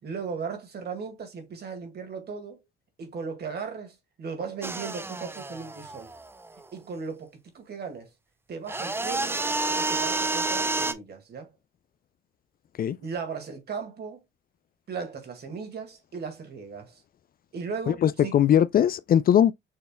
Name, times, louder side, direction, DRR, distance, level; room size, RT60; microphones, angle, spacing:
voice 1, 0.0-2.6 3.0-6.1 6.7-8.1 8.5-9.4 9.8-11.5 13.0-14.2 14.9-17.0 17.5-18.4, right 5 dB, 55° right, 2.0 m, -37 dB
sound 1, 4.6-6.6 8.7-10.9, right 3 dB, 10° right, 0.5 m, -29 dB
voice 2, 17.9-19.5, left 10 dB, 50° left, 0.4 m, -20 dB
6.4 x 3.4 x 2.2 m
cardioid pair, 90°, 20 cm